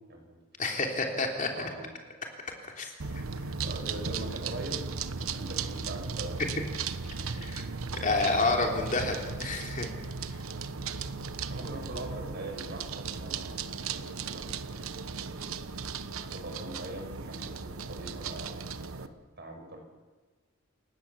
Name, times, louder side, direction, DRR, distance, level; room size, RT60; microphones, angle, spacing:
voice 1, 0.1-0.4 1.5-1.9 3.6-6.5 10.5-11.0 11.5-15.6 16.2-19.8, right 1 dB, 50° right, 3 dB, 6.1 m, -43 dB
voice 2, 0.6-1.7 2.7-2.9 7.3-7.6 7.9-9.9 10.3-10.4, left 3 dB, 40° left, 2 dB, 3.2 m, -29 dB
sound 1, 3.0-19.1, right 5 dB, 75° right, 1.1 m, -36 dB
29.0 x 17.0 x 7.4 m, 1.3 s
head